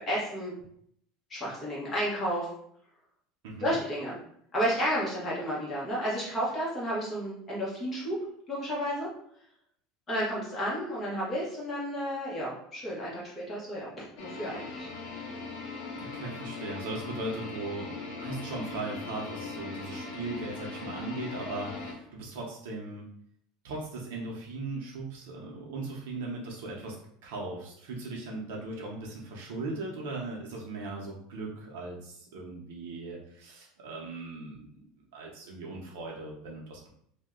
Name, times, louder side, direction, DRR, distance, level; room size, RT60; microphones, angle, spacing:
voice 1, 0.1-0.5 1.3-2.5 3.6-4.2 4.5-8.1 8.5-9.1 10.1-14.9, equal, 15° left, -6 dB, 1.0 m, -32 dB
voice 2, 3.4-3.8 16.0-17.9 18.2-23.1 23.6-27.0 27.2-34.9 35.1-36.9, right 2 dB, 90° right, -2 dB, 0.6 m, -38 dB
sound 1, 14.2-21.9, left 3 dB, 55° left, 0.7 m, -39 dB
2.6 x 2.1 x 3.6 m, 0.68 s
cardioid pair, 175°, 0 cm